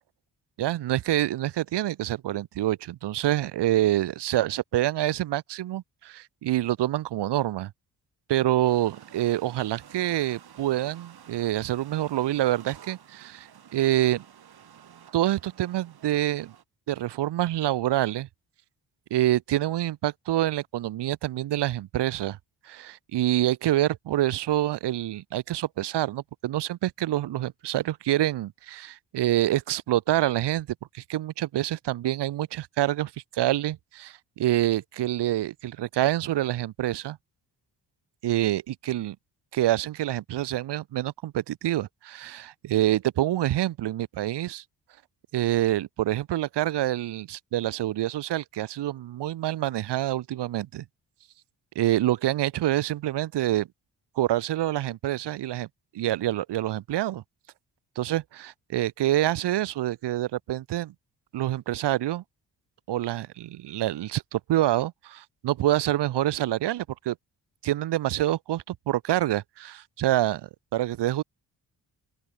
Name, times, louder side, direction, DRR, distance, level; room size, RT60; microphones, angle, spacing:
voice 1, 0.6-7.7 8.3-14.2 15.1-16.5 16.9-18.3 19.1-22.4 22.6-30.7 30.9-37.2 38.2-39.2 39.5-44.6 45.3-50.8 51.7-53.7 54.2-55.7 55.9-57.2 58.0-60.9 61.3-62.2 62.9-67.2 67.6-71.2, right 14 dB, 80° right, 1.2 m, -26 dB
sound 1, 8.6-16.6, right 8 dB, 65° right, 7.2 m, -51 dB
open air
cardioid pair, 90°, 40 cm